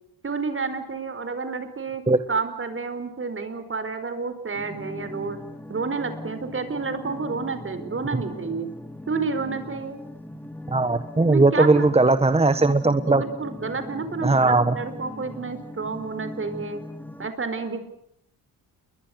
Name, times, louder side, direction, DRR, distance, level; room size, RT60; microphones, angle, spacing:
voice 1, 0.2-2.0 2.3-5.4 5.7-8.7 9.1-10.0 11.1-12.2 13.0-16.8 17.2-17.8, right 4 dB, 35° right, 10 dB, 4.6 m, -30 dB
sound 1, 4.5-17.3, left 1 dB, 5° left, 2.4 m, -39 dB
voice 2, 10.7-13.2 14.2-14.8, right 3 dB, 15° right, 11 dB, 1.3 m, -19 dB
29.5 x 22.5 x 8.0 m, 0.68 s
cardioid pair, 105°, 38 cm